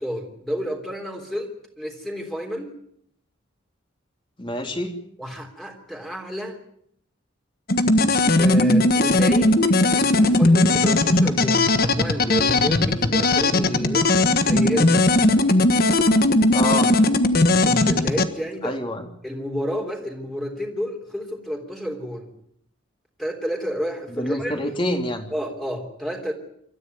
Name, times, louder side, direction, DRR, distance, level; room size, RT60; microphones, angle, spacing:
voice 1, 0.0-2.7 5.2-6.6 8.4-15.1 17.6-18.8 19.2-22.3 23.2-24.6 25.3-26.3, equal, ahead, 1 dB, 3.3 m, -30 dB
voice 2, 4.4-4.9 16.5-16.9 18.6-19.0 24.1-25.3, left 1 dB, 25° left, 4 dB, 3.2 m, -26 dB
sound 1, 7.7-18.3, left 2 dB, 50° left, 1.5 m, -18 dB
27.0 x 13.5 x 9.5 m, 0.69 s
head